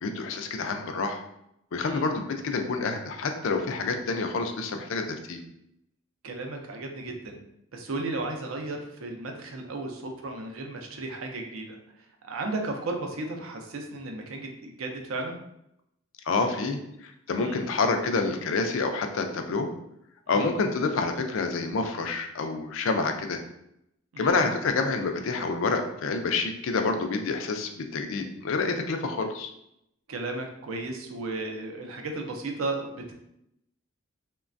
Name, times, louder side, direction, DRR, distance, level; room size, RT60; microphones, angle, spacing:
voice 1, 0.0-1.2 1.7-5.4 16.3-16.8 17.3-19.7 20.3-23.4 24.2-29.5, left 4 dB, 70° left, 5 dB, 0.4 m, -28 dB
voice 2, 6.2-7.4 7.7-11.8 12.2-15.4 17.4-17.6 20.3-20.5 24.1-24.4 30.1-33.1, right 2 dB, 80° right, 3 dB, 0.5 m, -34 dB
3.1 x 2.2 x 2.5 m, 0.79 s
head